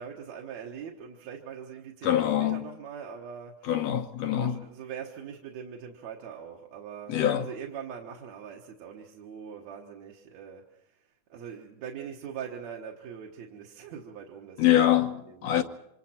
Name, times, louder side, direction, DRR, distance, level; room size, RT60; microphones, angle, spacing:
voice 1, 0.0-3.7 4.3-11.0 11.3-15.6, right 7 dB, 65° right, 2.6 m, -42 dB
voice 2, 2.0-2.6 3.6-4.6 7.1-7.5 14.6-15.6, left 11 dB, 65° left, 2.1 m, -24 dB
27.0 x 25.5 x 4.4 m
omnidirectional pair, 3.5 m